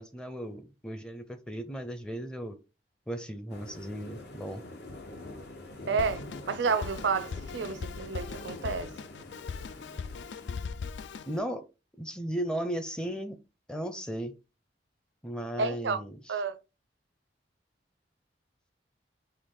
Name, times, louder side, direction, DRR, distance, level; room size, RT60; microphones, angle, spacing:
voice 1, 0.0-2.6 3.1-4.6 11.3-11.6 12.0-13.4 13.7-14.3 15.2-16.2, right 1 dB, 5° left, 0.5 m, -36 dB
sound 1, 3.5-10.5, left 2 dB, 65° left, 0.9 m, -46 dB
voice 2, 5.9-8.9 15.6-16.0 16.3-16.6, right 4 dB, 80° right, 0.5 m, -30 dB
Drum kit, 6.0-11.4, left 5 dB, 80° left, 0.4 m, -40 dB
4.5 x 2.9 x 3.7 m
head